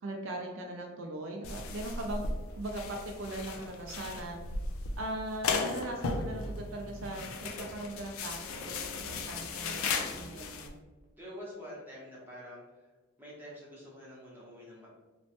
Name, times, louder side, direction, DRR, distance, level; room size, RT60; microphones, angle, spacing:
voice 1, 0.0-2.2 2.6-4.4 5.0-10.8, right 1 dB, 60° right, 2 dB, 0.4 m, -39 dB
sound 1, 1.4-10.7, left 4 dB, 70° left, 0.3 m, -36 dB
voice 2, 11.2-12.6 13.2-14.9, equal, 10° right, -6 dB, 0.7 m, -46 dB
3.0 x 2.1 x 2.8 m, 1.2 s
head